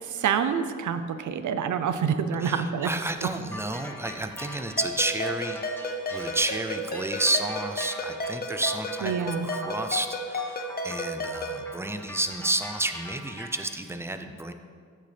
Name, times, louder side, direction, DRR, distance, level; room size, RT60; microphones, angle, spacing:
voice 1, 0.0-2.9 9.0-9.5, right 7 dB, 85° right, 10 dB, 0.6 m, -27 dB
voice 2, 2.4-14.5, right 2 dB, 10° right, 8 dB, 0.4 m, -31 dB
sound 1, 3.5-13.8, left 1 dB, 5° left, 1.0 m, -43 dB
Ringtone, 4.8-11.6, left 1 dB, 30° left, 0.8 m, -33 dB
13.0 x 6.7 x 3.3 m, 2.1 s
wide cardioid pair, 140°, 29 cm